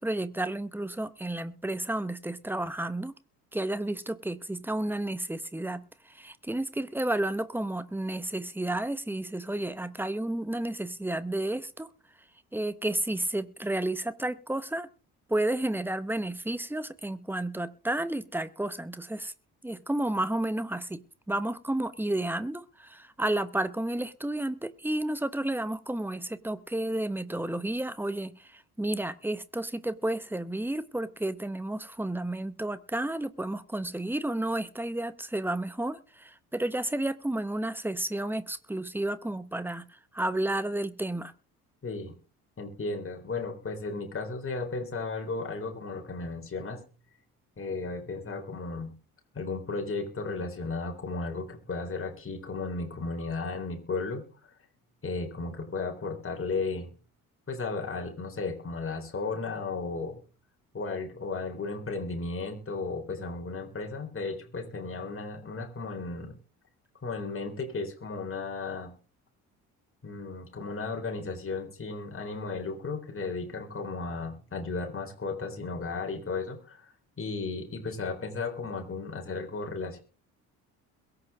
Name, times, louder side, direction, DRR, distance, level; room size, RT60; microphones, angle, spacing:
voice 1, 0.0-3.1 3.5-11.9 12.5-14.9 15.3-19.3 19.6-21.0 21.3-41.3, right 1 dB, 5° right, 1.2 m, -31 dB
voice 2, 41.8-42.1 42.6-46.8 47.6-48.9 49.3-54.2 55.0-56.9 57.5-60.2 60.7-66.3 67.0-68.9 70.0-80.0, left 3 dB, 30° left, 3.9 m, -34 dB
22.0 x 8.0 x 3.6 m
figure-of-eight pair, 50°, 44 cm